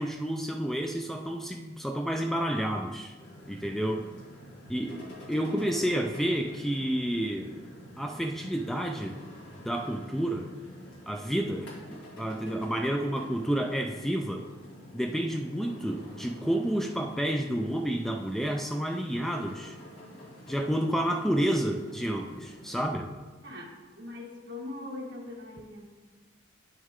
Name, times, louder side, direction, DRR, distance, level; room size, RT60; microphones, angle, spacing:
voice 1, 0.0-3.2 3.5-4.1 4.7-5.0 5.3-7.5 8.0-9.2 9.6-10.5 11.1-14.4 14.9-19.8 20.5-23.1, right 1 dB, ahead, 3 dB, 0.4 m, -30 dB
sound 1, 3.2-22.8, equal, 60° left, 2.5 m, -48 dB
voice 2, 5.6-6.0 23.4-25.8, left 2 dB, 60° right, -3 dB, 2.0 m, -41 dB
9.0 x 6.4 x 3.7 m, 1.3 s
head